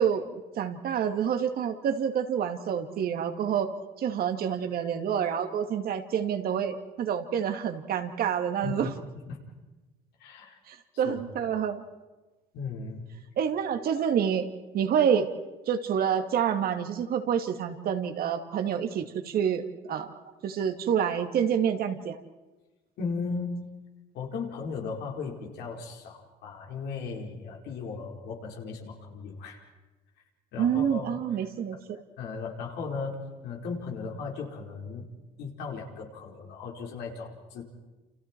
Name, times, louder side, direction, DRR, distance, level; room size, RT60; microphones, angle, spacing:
voice 1, 0.0-3.7 4.0-8.9 10.7-11.8 13.4-14.5 14.7-15.3 15.7-20.1 20.4-22.2 30.6-32.0, right 8 dB, 60° right, 7 dB, 2.1 m, -28 dB
voice 2, 8.6-8.9 9.3-9.4 10.2-10.6 11.0-11.6 12.5-13.0 23.0-23.7 24.1-29.6 30.5-31.2 32.2-33.2 33.4-35.0 35.4-37.6, left 4 dB, 80° left, 0 dB, 4.6 m, -36 dB
29.0 x 28.0 x 4.6 m, 1.2 s
cardioid pair, 110°, 17 cm